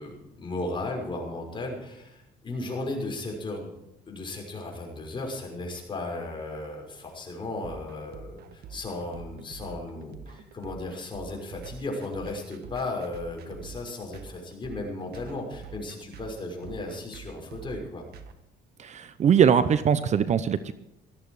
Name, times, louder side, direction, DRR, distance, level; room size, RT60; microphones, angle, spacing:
voice 1, 0.0-3.7 4.1-18.0, left 2 dB, 30° left, 1 dB, 5.9 m, -35 dB
sound 1, 7.6-18.3, right 6 dB, 70° right, 1.6 m, -46 dB
voice 2, 18.8-20.7, right 7 dB, 45° right, 13 dB, 0.8 m, -21 dB
18.0 x 13.5 x 4.9 m, 0.84 s
cardioid pair, 110°, 17 cm